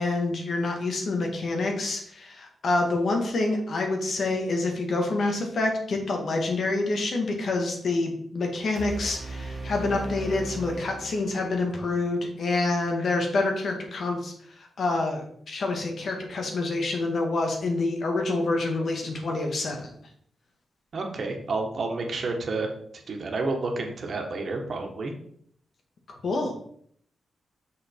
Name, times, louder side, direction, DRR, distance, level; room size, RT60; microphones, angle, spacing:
voice 1, 0.0-19.9 26.1-26.6, left 2 dB, 65° left, 2 dB, 1.8 m, -27 dB
sound 1, 8.7-11.8, right 2 dB, 25° right, 1.4 m, -37 dB
voice 2, 20.9-22.7 22.9-25.1, right 3 dB, 60° right, 3 dB, 1.6 m, -30 dB
6.3 x 5.2 x 4.6 m, 0.64 s
cardioid pair, 85°, 0 cm